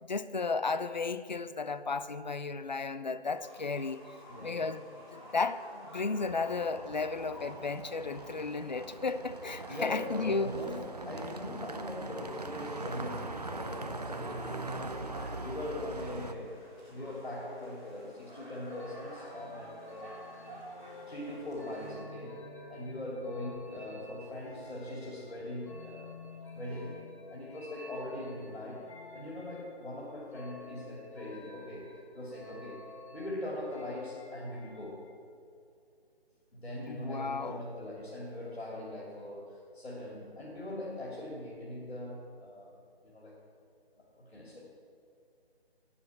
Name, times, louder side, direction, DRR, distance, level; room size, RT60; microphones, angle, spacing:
voice 1, 0.0-4.0 4.4-10.5 36.9-37.6, left 4 dB, 45° left, 13 dB, 0.4 m, -34 dB
sound 1, 3.3-21.9, right 1 dB, 5° left, 1.0 m, -51 dB
voice 2, 4.3-4.7 9.7-16.6 16.9-20.2 21.1-26.1 26.5-32.8 33.1-35.0 36.5-42.8 43.0-43.4 44.0-44.6, left 1 dB, 80° left, -5 dB, 2.9 m, -41 dB
sound 2, 6.2-16.3, right 2 dB, 40° right, 0.5 m, -42 dB
sound 3, 18.7-35.1, left 3 dB, 30° left, 1.6 m, -50 dB
8.9 x 7.1 x 8.4 m, 2.4 s
figure-of-eight pair, 170°, 32 cm